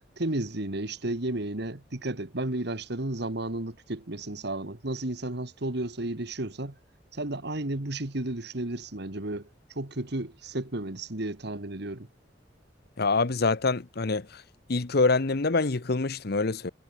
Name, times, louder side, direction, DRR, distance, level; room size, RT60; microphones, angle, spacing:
voice 1, 0.0-6.8 7.1-9.5 9.8-12.1, right 2 dB, 60° right, 1.9 m, -33 dB
voice 2, 13.0-14.4 14.7-16.7, left 3 dB, 55° left, 0.9 m, -25 dB
head